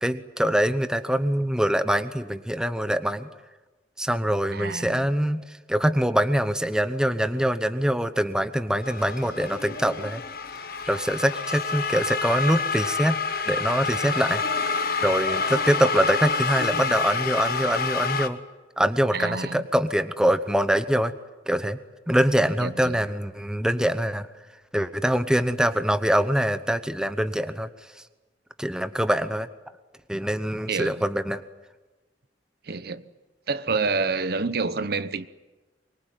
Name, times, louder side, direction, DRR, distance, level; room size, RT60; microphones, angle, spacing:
voice 1, 0.0-3.3 4.0-10.2 10.9-13.2 13.5-18.4 18.8-21.1 21.5-21.8 22.1-24.3 24.7-27.7 28.6-29.5 30.1-31.4, equal, 5° right, 0.9 m, -24 dB
voice 2, 4.5-5.0 19.1-19.6 22.6-23.0 30.7-31.0 32.6-33.0 33.5-35.3, right 4 dB, 60° right, 0.9 m, -28 dB
sound 1, 8.8-18.3, left 4 dB, 55° left, 1.4 m, -28 dB
24.0 x 22.5 x 9.1 m
head